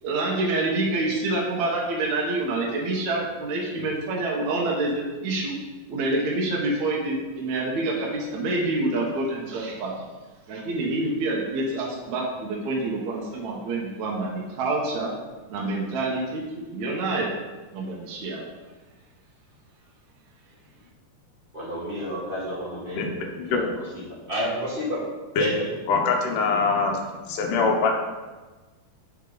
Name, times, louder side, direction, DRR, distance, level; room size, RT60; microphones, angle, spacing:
voice 1, 0.0-5.6 5.9-9.9 10.5-15.1 15.5-17.3 17.7-18.4, right 2 dB, 65° right, -3 dB, 2.3 m, -27 dB
voice 2, 21.5-23.1 23.5-25.0 25.4-25.7, equal, 15° right, -9 dB, 2.5 m, -30 dB
voice 3, 23.0-23.7 25.4-25.5 25.9-27.0 27.3-28.0, left 4 dB, 80° left, 2 dB, 2.5 m, -23 dB
7.9 x 6.3 x 3.9 m, 1.3 s
omnidirectional pair, 3.7 m